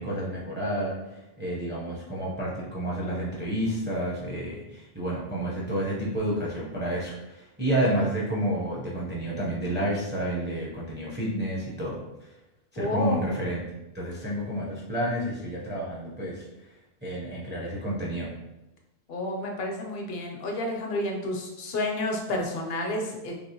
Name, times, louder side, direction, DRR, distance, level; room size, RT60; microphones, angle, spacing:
voice 1, 0.0-12.0 12.7-13.6 13.9-16.5 17.0-18.3, right 1 dB, 10° right, -5 dB, 0.6 m, -30 dB
voice 2, 12.8-13.3 19.1-23.3, left 2 dB, 70° left, 1 dB, 0.9 m, -30 dB
3.3 x 2.8 x 2.8 m, 0.98 s
omnidirectional pair, 1.1 m